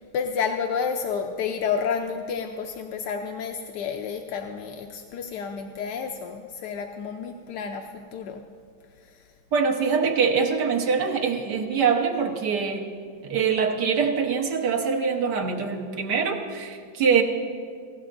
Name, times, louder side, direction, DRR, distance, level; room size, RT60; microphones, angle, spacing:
voice 1, 0.1-7.8 8.1-8.4, left 6 dB, 80° left, 4 dB, 1.2 m, -30 dB
voice 2, 9.5-12.9 13.2-17.2, right 6 dB, 75° right, 2 dB, 1.7 m, -24 dB
18.0 x 16.0 x 2.5 m, 2.1 s
omnidirectional pair, 1.8 m